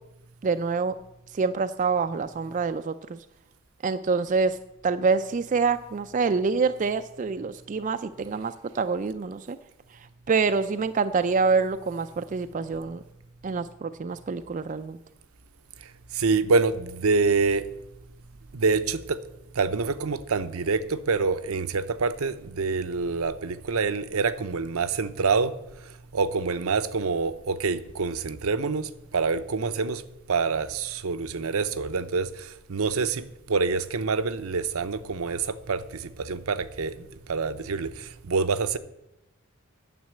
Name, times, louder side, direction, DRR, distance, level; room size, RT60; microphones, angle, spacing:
voice 1, 0.4-0.9 1.3-3.2 3.8-4.6 4.8-9.6 10.3-13.0 13.4-15.0, right 4 dB, 35° right, 0.3 m, -26 dB
voice 2, 16.2-17.6 18.5-19.2 19.6-25.5 26.1-30.0 30.3-32.3 32.7-33.2 33.5-35.8 36.2-36.9 37.3-37.9 38.3-38.8, right 4 dB, 75° right, 0.7 m, -26 dB
9.4 x 7.4 x 8.2 m
head